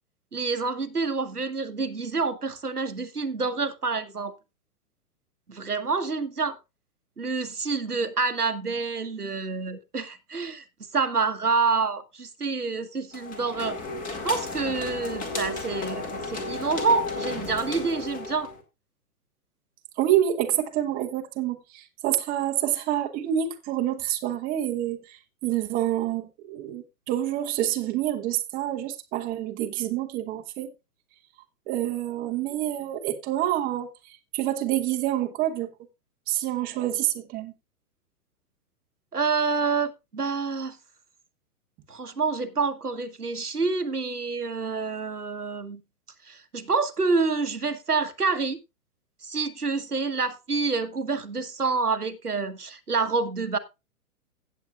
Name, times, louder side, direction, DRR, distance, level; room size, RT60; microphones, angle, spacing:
voice 1, 0.3-4.3 5.5-6.6 7.2-10.6 10.9-13.8 14.2-18.5 39.1-40.8 41.9-45.8 46.3-48.6 49.2-53.6, right 4 dB, 85° right, 1.3 m, -27 dB
sound 1, 13.1-18.6, left 3 dB, 20° left, 2.2 m, -33 dB
voice 2, 20.0-30.7 31.7-35.7 36.3-37.5, right 12 dB, 20° right, 1.1 m, -27 dB
16.5 x 7.9 x 2.4 m
figure-of-eight pair, 115°, 44 cm